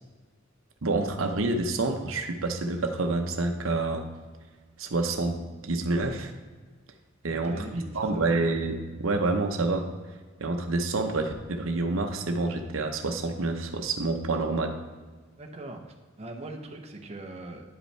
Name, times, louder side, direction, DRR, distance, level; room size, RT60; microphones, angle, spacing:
voice 1, 0.8-4.0 4.8-5.4 5.6-6.3 7.2-9.9 10.4-14.7, right 3 dB, 90° right, 5 dB, 0.8 m, -28 dB
voice 2, 7.3-8.3 15.4-15.8 16.2-17.6, right 2 dB, 30° right, 2 dB, 0.7 m, -41 dB
9.9 x 5.3 x 3.3 m, 1.4 s
head